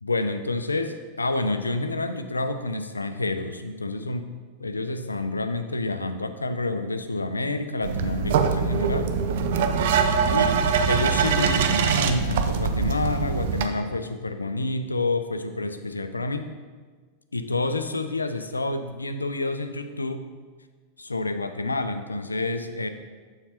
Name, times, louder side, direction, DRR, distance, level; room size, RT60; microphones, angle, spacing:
voice 1, 0.0-4.3 4.6-9.1 10.3-10.6 10.9-16.5 17.3-20.3 21.0-22.9, left 2 dB, 80° left, 9 dB, 0.4 m, -28 dB
sound 1, 7.8-13.7, right 6 dB, 55° right, 0.5 m, -23 dB
7.1 x 6.6 x 2.9 m, 1.5 s
figure-of-eight pair, 90°, 0 cm